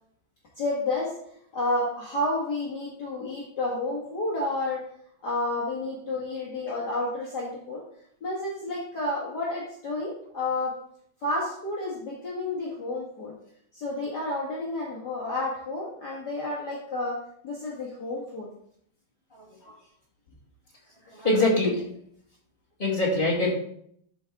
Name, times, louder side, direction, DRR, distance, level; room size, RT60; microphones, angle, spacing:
voice 1, 0.6-1.1 1.5-4.8 5.2-7.8 8.2-10.7 11.2-13.3 13.7-17.2 17.4-18.5 19.6-19.8, left 2 dB, 50° left, -5 dB, 1.2 m, -30 dB
voice 2, 21.1-21.8 22.8-23.5, left 2 dB, 20° left, -6 dB, 1.5 m, -23 dB
13.0 x 5.4 x 3.6 m, 0.67 s
omnidirectional pair, 4.4 m